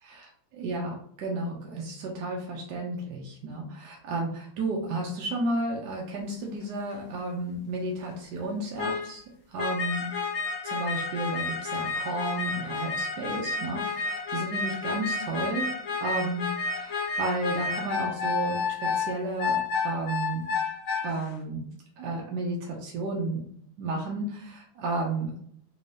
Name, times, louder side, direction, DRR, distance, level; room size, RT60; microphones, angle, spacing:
voice 1, 0.0-9.2 9.5-10.1 10.6-15.7 16.0-16.5 16.7-19.6 19.8-20.5 21.0-21.7 22.0-23.5 23.8-25.4, right 2 dB, 70° right, -1 dB, 1.1 m, -32 dB
sound 1, 6.9-7.0 8.8-9.1 9.6-21.2, left 4 dB, 60° left, 0.9 m, -31 dB
3.5 x 2.7 x 3.2 m, 0.65 s
omnidirectional pair, 2.3 m